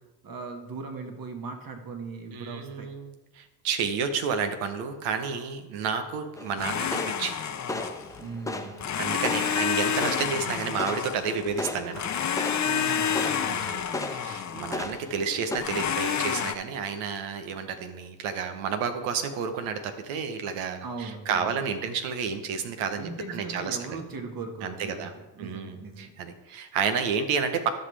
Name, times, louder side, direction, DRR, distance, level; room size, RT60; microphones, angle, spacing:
voice 1, 0.2-2.9 8.2-9.0 12.6-13.4 20.8-21.6 22.9-26.1, right 3 dB, 45° right, 4 dB, 1.8 m, -39 dB
voice 2, 2.3-7.4 9.0-12.0 13.4-13.8 14.1-24.0 24.6-25.1 25.4-27.7, right 6 dB, 85° right, 7 dB, 1.1 m, -31 dB
sound 1, 6.4-15.6, left 2 dB, 5° left, 0.8 m, -37 dB
Domestic sounds home sounds, 6.6-8.2 8.8-11.6 11.9-15.0 15.6-16.5, left 8 dB, 35° left, 0.7 m, -29 dB
13.5 x 5.6 x 3.4 m, 1.1 s
supercardioid pair, 55°, 48 cm